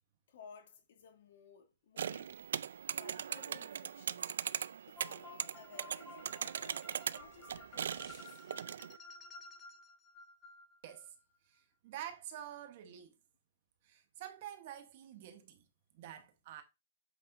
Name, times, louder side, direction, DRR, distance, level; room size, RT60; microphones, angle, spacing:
voice 1, 0.3-2.4 3.0-4.3 4.9-8.5, left 6 dB, 60° left, 2.2 m, -58 dB
sound 1, 2.0-9.0, right 8 dB, 75° right, 0.3 m, -40 dB
sound 2, 5.0-11.1, left 2 dB, 15° left, 1.9 m, -54 dB
voice 2, 10.8-11.1 11.5-13.1 13.8-15.7 15.9-16.6, right 11 dB, 45° right, 1.1 m, -48 dB
8.3 x 5.6 x 2.6 m
hypercardioid pair, 160°, 0 cm